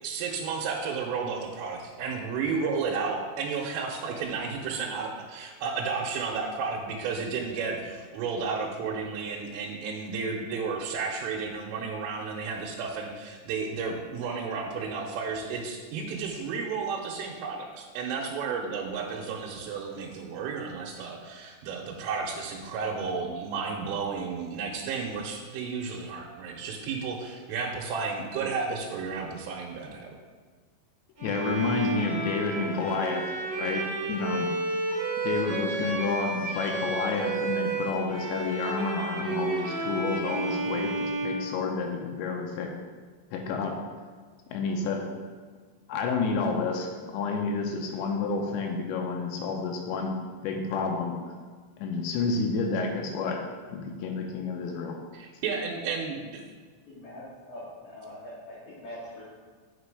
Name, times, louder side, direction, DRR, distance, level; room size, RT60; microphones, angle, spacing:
voice 1, 0.0-30.1 55.1-56.4, right 5 dB, 85° right, -1 dB, 3.3 m, -32 dB
voice 2, 31.2-33.2 33.6-33.8 34.1-34.5 35.2-42.7 43.3-43.7 44.5-45.0 45.9-50.2 50.4-51.2 51.8-53.4 53.7-55.0, left 4 dB, 80° left, 2 dB, 2.7 m, -30 dB
Bowed string instrument, 31.2-42.2, right 3 dB, 45° right, 1.4 m, -32 dB
voice 3, 56.8-59.2, left 1 dB, 60° left, -12 dB, 3.4 m, -43 dB
8.3 x 5.2 x 4.8 m, 1.5 s
omnidirectional pair, 5.8 m